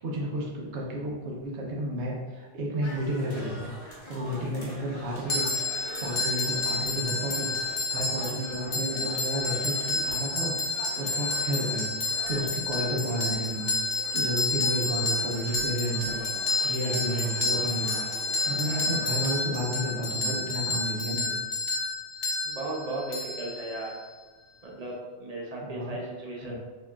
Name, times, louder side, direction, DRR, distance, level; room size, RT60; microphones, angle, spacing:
voice 1, 0.0-5.5 6.0-11.9 12.3-18.1 18.5-21.3 25.6-26.0 26.4-26.6, right 1 dB, 80° right, -2 dB, 1.0 m, -32 dB
sound 1, 2.8-19.4, left 1 dB, 30° left, 0.8 m, -44 dB
sound 2, 5.3-24.1, left 3 dB, 60° left, 0.9 m, -30 dB
voice 2, 22.4-24.0 24.6-26.6, right 2 dB, 40° right, -2 dB, 0.6 m, -36 dB
4.6 x 2.9 x 2.3 m, 1.3 s
omnidirectional pair, 1.2 m